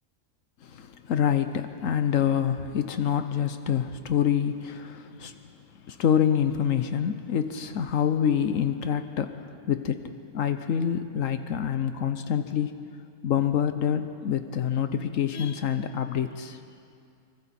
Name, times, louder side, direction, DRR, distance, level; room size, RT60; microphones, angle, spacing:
voice 1, 0.6-5.5 5.9-12.8 13.2-16.6, left 8 dB, 80° left, 9 dB, 1.2 m, -26 dB
27.0 x 24.5 x 4.3 m, 2.5 s
omnidirectional pair, 1.4 m